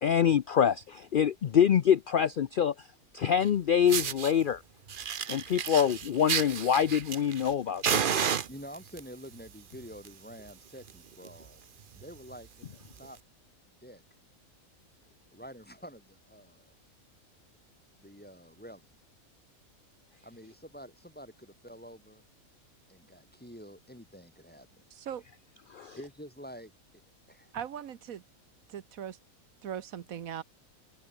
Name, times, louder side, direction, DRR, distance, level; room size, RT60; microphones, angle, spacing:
voice 1, 0.0-2.7 3.1-4.6 5.3-8.2 25.7-26.0, left 8 dB, 60° left, 0.5 m, -25 dB
Fire, 3.4-3.5 3.9-4.3 4.9-7.5 7.8-9.0 9.8-10.1 10.4-10.5 10.9-11.0 11.2-11.5 12.0-12.1 13.0-13.1, right 7 dB, 45° right, 0.9 m, -31 dB
voice 2, 8.5-11.7 11.9-13.2 13.7-14.0 15.3-16.7 18.0-18.9 20.2-22.2 22.9-24.7 26.0-27.0 27.3-27.5, equal, 5° left, 1.3 m, -48 dB
voice 3, 24.9-25.2 27.5-28.2 28.7-29.2 29.6-30.4, right 9 dB, 75° right, 1.4 m, -39 dB
open air
omnidirectional pair, 1.5 m